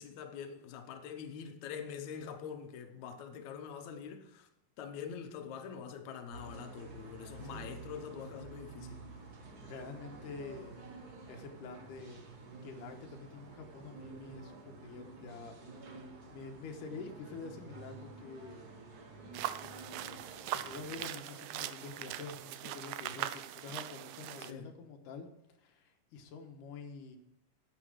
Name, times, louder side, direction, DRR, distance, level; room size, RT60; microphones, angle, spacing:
voice 1, 0.0-4.5 4.8-9.0 24.4-24.7, left 7 dB, 70° left, 2.3 m, -44 dB
sound 1, 6.3-21.0, right 3 dB, 45° right, 1.4 m, -50 dB
voice 2, 9.6-10.8 11.3-12.2 12.6-15.9 16.3-18.6 19.6-25.3 25.6-27.2, left 4 dB, 85° left, 2.7 m, -47 dB
sound 2, 19.3-24.5, right 13 dB, 80° right, 1.8 m, -41 dB
10.0 x 8.3 x 4.9 m
omnidirectional pair, 3.7 m